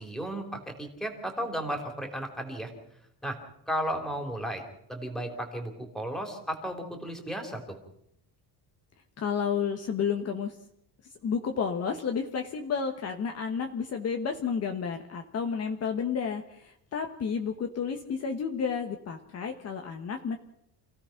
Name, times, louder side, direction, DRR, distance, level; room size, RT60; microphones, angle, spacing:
voice 1, 0.0-2.7 3.2-3.4 3.7-4.6 4.9-7.8, equal, ahead, 4 dB, 3.3 m, -34 dB
voice 2, 9.2-10.6 11.2-20.4, left 6 dB, 35° left, 4 dB, 1.4 m, -31 dB
28.0 x 16.5 x 5.9 m, 0.75 s
cardioid pair, 170°, 41 cm